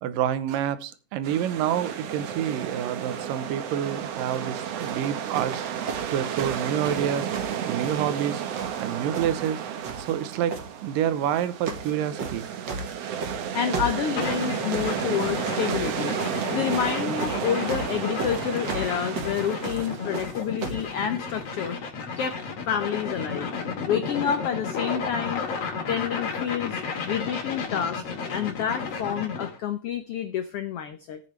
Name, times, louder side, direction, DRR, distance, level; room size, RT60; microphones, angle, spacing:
voice 1, 0.0-5.7 6.1-7.3 7.7-8.4 8.8-9.6 10.0-10.6 10.8-12.5, right 10 dB, 85° right, 2.6 m, -28 dB
sound 1, 1.2-20.3, right 8 dB, 60° right, 1.9 m, -32 dB
sound 2, 4.2-4.4 4.8-8.3 8.5-9.5 9.8-10.7 11.3-11.9 12.2-20.9 21.7-21.8, right 3 dB, 45° right, 1.7 m, -36 dB
voice 2, 13.5-16.1 16.5-22.4 22.7-23.5 23.9-25.4 25.9-28.0 28.3-31.2, left 8 dB, 85° left, 1.3 m, -29 dB
sound 3, 14.2-29.6, left 5 dB, 50° left, 2.9 m, -33 dB
16.0 x 8.9 x 3.2 m
omnidirectional pair, 3.8 m